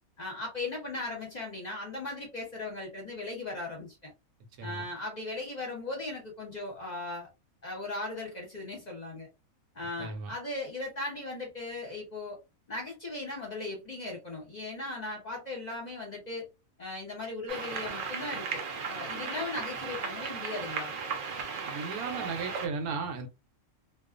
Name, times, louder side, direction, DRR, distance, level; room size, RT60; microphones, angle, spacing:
voice 1, 0.2-4.1 4.6-7.3 7.6-9.3 9.7-12.4 12.7-16.5 16.8-18.6 18.9-21.0, left 2 dB, 35° left, 0.8 m, -38 dB
voice 2, 10.0-10.3 21.7-23.3, right 4 dB, 85° right, 1.1 m, -35 dB
sound 1, 17.5-22.7, right 5 dB, 70° right, 0.5 m, -36 dB
2.4 x 2.3 x 2.4 m
omnidirectional pair, 1.5 m